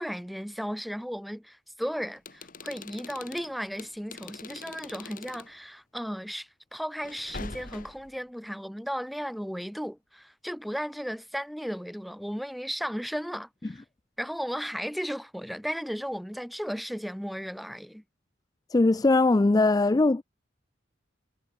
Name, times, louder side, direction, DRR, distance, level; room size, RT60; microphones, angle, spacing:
voice 1, 0.0-13.8 14.2-18.0, equal, ahead, 5.2 m, -35 dB
sound 1, 2.2-5.5 7.0-8.1, left 3 dB, 45° left, 2.4 m, -43 dB
voice 2, 18.7-20.2, left 2 dB, 20° left, 0.3 m, -21 dB
head